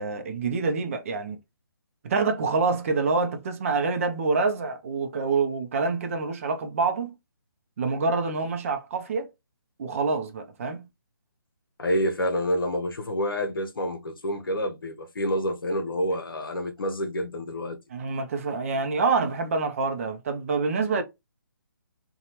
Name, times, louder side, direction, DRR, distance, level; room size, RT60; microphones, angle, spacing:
voice 1, 0.0-1.4 2.0-7.1 7.8-9.3 9.8-10.9 17.9-21.0, right 4 dB, 40° right, 0.5 m, -26 dB
voice 2, 11.8-17.8, equal, 70° left, 0.7 m, -28 dB
2.7 x 2.3 x 2.9 m
figure-of-eight pair, 145°, 12 cm